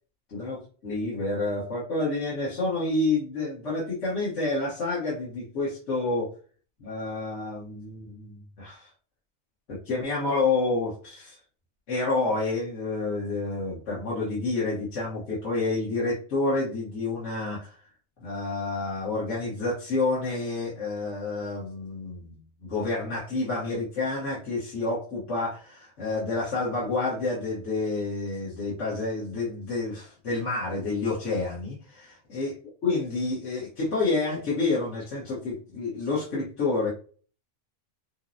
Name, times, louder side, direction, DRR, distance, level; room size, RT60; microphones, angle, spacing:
voice 1, 0.3-6.3 6.8-8.9 9.7-11.4 11.9-17.8 18.2-22.3 22.6-32.5 32.8-36.9, left 3 dB, 80° left, -7 dB, 1.5 m, -29 dB
5.9 x 2.1 x 2.6 m, 0.40 s
omnidirectional pair, 1.2 m